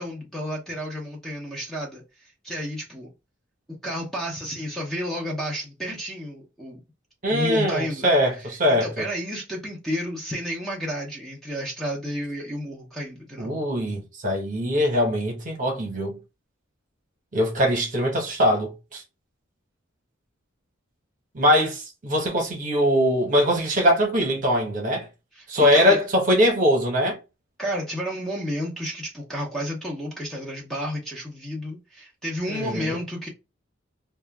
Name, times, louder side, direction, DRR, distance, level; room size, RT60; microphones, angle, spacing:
voice 1, 0.0-3.1 3.8-6.8 7.3-8.1 8.4-13.5 25.3-26.0 27.6-33.3, equal, ahead, 0.6 m, -31 dB
voice 2, 7.2-9.1 13.4-16.2 17.3-19.0 21.3-25.1 25.5-27.2 32.5-33.0, equal, 45° right, 0.9 m, -22 dB
2.4 x 2.2 x 3.3 m
head